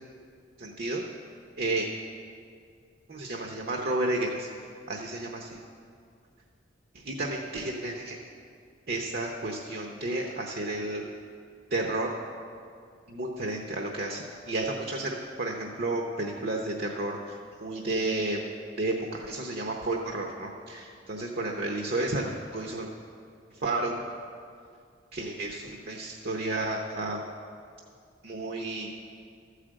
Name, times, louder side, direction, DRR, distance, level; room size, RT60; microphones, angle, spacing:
voice 1, 0.6-1.0 1.6-1.9 3.1-4.5 4.9-5.6 7.1-8.2 8.9-11.0 11.7-12.1 13.1-17.2 17.6-18.4 18.8-22.9 23.6-24.0 25.1-27.2 28.2-28.9, right 2 dB, 55° right, 1 dB, 0.8 m, -31 dB
13.5 x 5.0 x 7.6 m, 2.3 s
head